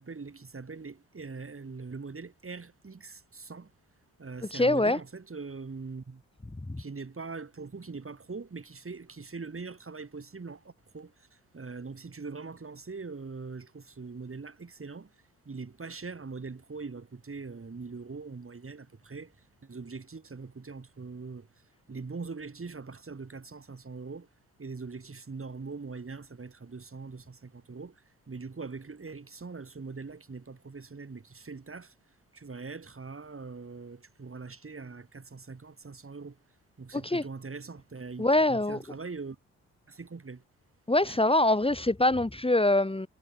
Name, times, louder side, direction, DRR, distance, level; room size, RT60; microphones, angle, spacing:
voice 1, 0.0-3.7 4.2-6.2 6.8-15.1 15.4-21.5 21.9-24.3 24.6-31.9 32.3-36.4 36.8-39.4 39.9-40.4 41.0-41.2, right 4 dB, 35° right, 6.2 m, -42 dB
voice 2, 4.5-5.0 6.7-6.8 37.0-37.2 38.2-38.8 40.9-43.1, left 2 dB, 15° left, 3.0 m, -24 dB
hypercardioid pair, 45°, 36 cm